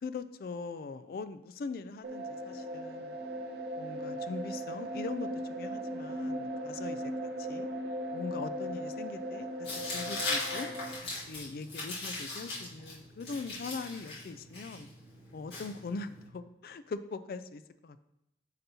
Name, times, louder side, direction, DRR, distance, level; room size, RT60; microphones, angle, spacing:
voice 1, 0.0-3.2 3.8-7.1 7.4-7.7 8.1-10.7 11.2-14.9 15.3-18.0, left 4 dB, 55° left, 12 dB, 0.3 m, -41 dB
sound 1, 2.0-10.9, equal, 65° right, 0.7 m, -38 dB
Tearing, 9.6-16.3, left 2 dB, 70° left, 1.9 m, -39 dB
8.8 x 4.1 x 2.8 m, 0.88 s
head